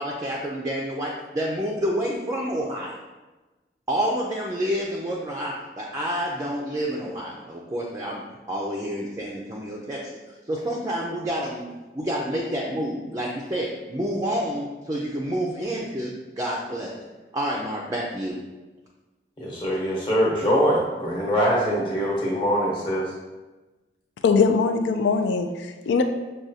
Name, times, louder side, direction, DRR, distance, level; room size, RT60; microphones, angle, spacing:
voice 1, 0.0-3.0 3.9-10.2 10.5-16.9 17.3-18.4, equal, 20° right, -3 dB, 0.4 m, -29 dB
voice 2, 19.4-23.1, equal, 30° left, -5 dB, 1.0 m, -23 dB
voice 3, 24.2-26.0, left 5 dB, 85° left, 7 dB, 0.3 m, -21 dB
6.1 x 2.3 x 2.7 m, 1.2 s
head